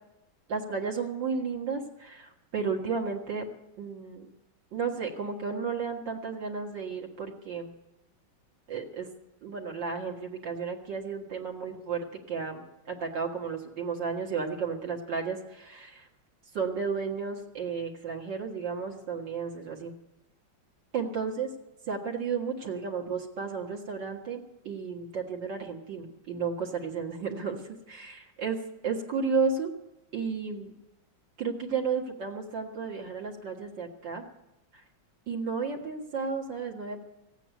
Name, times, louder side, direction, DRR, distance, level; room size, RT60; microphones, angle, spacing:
voice 1, 0.5-3.5 3.8-4.3 4.7-7.7 8.7-9.1 9.4-16.1 16.5-19.9 20.9-21.5 21.9-28.6 28.8-29.7 30.1-30.7 31.4-34.2 34.7-34.8 35.3-37.0, right 5 dB, 65° right, 0 dB, 2.5 m, -33 dB
16.0 x 9.1 x 9.2 m, 0.91 s
omnidirectional pair, 2.1 m